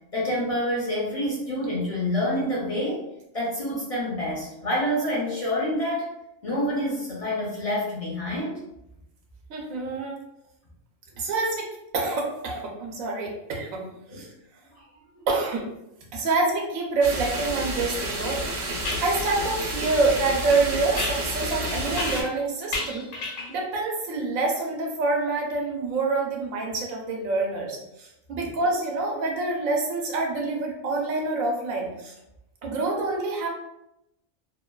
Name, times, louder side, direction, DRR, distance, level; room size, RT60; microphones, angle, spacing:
voice 1, 0.1-3.0 3.3-6.1 6.4-8.6 14.1-14.2, left 1 dB, 50° left, -5 dB, 0.4 m, -27 dB
voice 2, 9.5-10.2 11.2-11.7 11.9-13.8 14.1-14.3 15.3-15.7 16.1-18.4 19.0-23.0 23.5-32.1 32.6-33.5, right 3 dB, 90° right, 0 dB, 1.1 m, -26 dB
sound 1, 17.0-22.2, right 1 dB, 65° right, 0.8 m, -30 dB
sound 2, 17.9-18.0 18.8-19.1 21.0-22.4 22.7-23.6, left 2 dB, 75° left, 1.1 m, -32 dB
2.9 x 2.2 x 2.2 m, 0.86 s
omnidirectional pair, 1.4 m